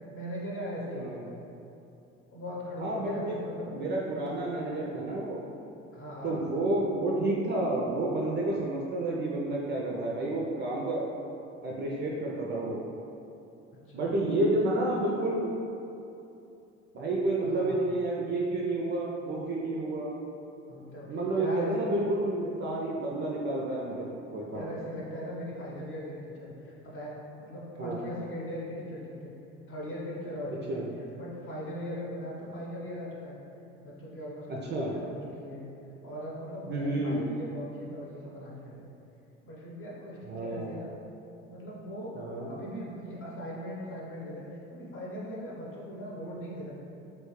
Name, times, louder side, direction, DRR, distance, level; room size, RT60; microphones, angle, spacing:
voice 1, 0.1-1.4 2.3-3.7 5.9-6.4 13.9-14.1 17.4-17.9 20.7-21.9 22.4-22.5 24.5-29.3 29.7-30.8 31.1-33.4 33.8-35.6 36.0-38.9 39.4-40.9 41.5-42.1 42.5-46.7, equal, 35° left, -5 dB, 0.9 m, -39 dB
voice 2, 2.8-3.4 3.7-5.4 6.2-11.1 11.6-12.8 13.9-15.5 16.9-20.1 21.1-24.6 27.8-28.0 30.7-30.8 34.5-34.9 36.6-37.2 40.3-40.8 42.2-42.5, right 2 dB, 30° right, -3 dB, 0.4 m, -30 dB
3.1 x 2.8 x 3.1 m, 2.8 s
figure-of-eight pair, 55°, 37 cm